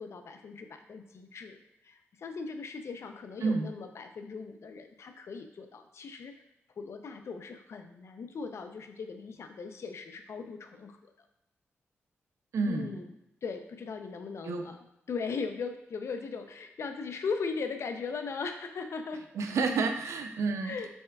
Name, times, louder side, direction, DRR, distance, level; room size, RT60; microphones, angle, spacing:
voice 1, 0.0-6.4 6.8-11.1 12.7-13.1 13.4-14.8 15.1-19.2 20.6-20.9, left 5 dB, 65° left, 7 dB, 0.5 m, -38 dB
voice 2, 12.5-12.9 14.4-14.7 19.4-20.8, right 4 dB, 75° right, 5 dB, 0.5 m, -29 dB
7.1 x 3.3 x 2.3 m, 0.86 s
cardioid pair, 55°, 5 cm